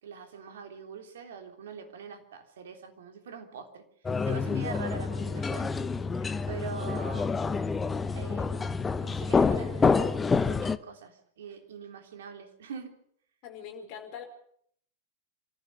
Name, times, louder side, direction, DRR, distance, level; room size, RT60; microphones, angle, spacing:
voice 1, 0.0-3.8 4.2-5.7 6.5-7.6 8.1-10.1 10.4-12.9, right 6 dB, 60° right, 5 dB, 3.4 m, -43 dB
sound 1, 4.0-10.8, left 4 dB, 15° left, 0.9 m, -28 dB
voice 2, 13.4-14.2, left 7 dB, 40° left, 3 dB, 5.2 m, -42 dB
26.5 x 15.0 x 6.8 m, 0.65 s
figure-of-eight pair, 90°, 0 cm